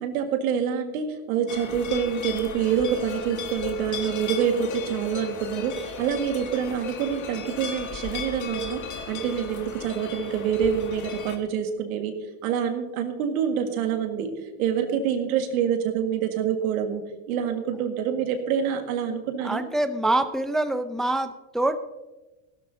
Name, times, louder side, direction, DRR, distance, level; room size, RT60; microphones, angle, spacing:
voice 1, 0.0-8.8 9.1-12.1 12.4-14.3 14.6-19.6, right 8 dB, 85° right, 5 dB, 1.9 m, -26 dB
sound 1, 1.5-11.4, left 5 dB, 45° left, 1.8 m, -36 dB
voice 2, 19.4-21.8, right 2 dB, ahead, 8 dB, 0.6 m, -25 dB
16.0 x 12.5 x 2.8 m, 1.1 s
supercardioid pair, 110°, 42 cm